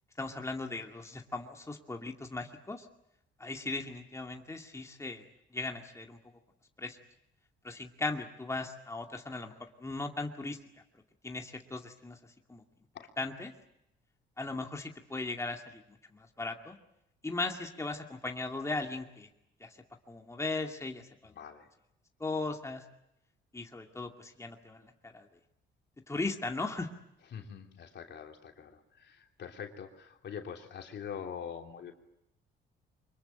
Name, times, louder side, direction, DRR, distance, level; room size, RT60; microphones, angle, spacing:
voice 1, 0.2-2.9 3.4-5.2 5.5-6.2 6.8-7.0 7.6-9.5 9.8-10.6 11.2-12.2 12.5-12.6 13.2-13.5 14.4-15.8 16.1-16.8 17.2-19.3 19.6-19.8 20.1-21.3 22.2-22.8 23.5-25.3 26.1-26.9, left 3 dB, 15° left, 3 dB, 2.3 m, -37 dB
voice 2, 21.3-21.7 27.3-31.9, left 7 dB, 60° left, 4 dB, 3.2 m, -44 dB
25.0 x 22.0 x 9.1 m, 0.83 s
cardioid pair, 90°, 20 cm